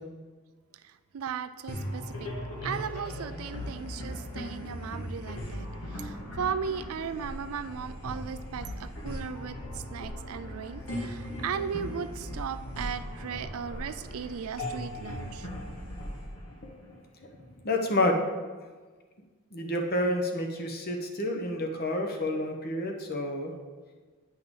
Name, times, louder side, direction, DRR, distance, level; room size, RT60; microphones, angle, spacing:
voice 1, 0.8-2.3 2.6-15.5, right 7 dB, 70° right, 12 dB, 0.4 m, -37 dB
sound 1, 1.7-17.3, equal, 80° left, 2.1 m, -38 dB
voice 2, 17.6-18.2 19.5-23.5, left 1 dB, 45° left, 3 dB, 1.0 m, -29 dB
8.9 x 5.7 x 3.8 m, 1.4 s
head